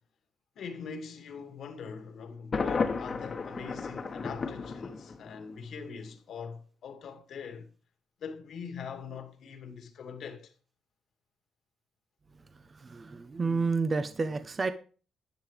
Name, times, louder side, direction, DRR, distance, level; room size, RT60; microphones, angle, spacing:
voice 1, 0.6-7.7 8.2-10.5, left 6 dB, 65° left, 2.4 m, -42 dB
Thunder, 2.5-5.5, left 4 dB, 40° left, 1.6 m, -33 dB
voice 2, 12.7-14.7, right 4 dB, 30° right, 1.0 m, -30 dB
12.0 x 9.9 x 3.5 m
cardioid pair, 90°, 0 cm